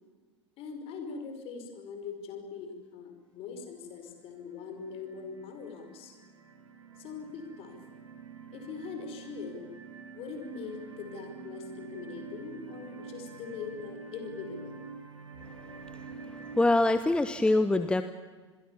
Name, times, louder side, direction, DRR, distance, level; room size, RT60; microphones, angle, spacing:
voice 1, 0.6-6.1 7.0-7.8 8.5-9.7 10.1-14.8 17.2-17.4, left 5 dB, 40° left, 5 dB, 5.1 m, -42 dB
sound 1, 3.5-3.9 4.4-16.7, right 5 dB, 75° right, 3.3 m, -47 dB
voice 2, 16.6-18.0, left 2 dB, 5° left, 11 dB, 1.0 m, -24 dB
27.0 x 22.0 x 7.3 m, 1.5 s
figure-of-eight pair, 85°, 15 cm